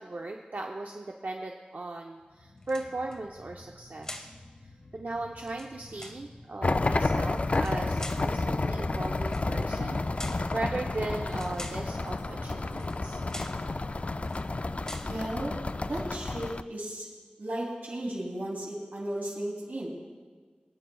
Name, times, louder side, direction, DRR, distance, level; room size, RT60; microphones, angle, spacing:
voice 1, 0.0-4.3 4.6-13.2, right 2 dB, 65° right, 1 dB, 0.7 m, -37 dB
sound 1, 2.2-15.5 15.8-15.9, left 2 dB, 75° left, 1.3 m, -49 dB
sound 2, 2.6-3.2 4.0-4.4 5.4-6.2 7.5-8.3 9.2-9.5 10.2-10.5 11.3-11.9 12.8-13.0 13.3-13.6 14.2-14.5 14.8-15.2, left 1 dB, 20° left, 1.1 m, -44 dB
sound 3, 6.6-16.6, left 2 dB, 45° left, 0.3 m, -30 dB
voice 2, 15.0-15.5 15.8-17.1 17.4-19.9, right 1 dB, 85° right, -5 dB, 3.0 m, -35 dB
25.0 x 8.8 x 2.3 m, 1.5 s
wide cardioid pair, 65°, 3 cm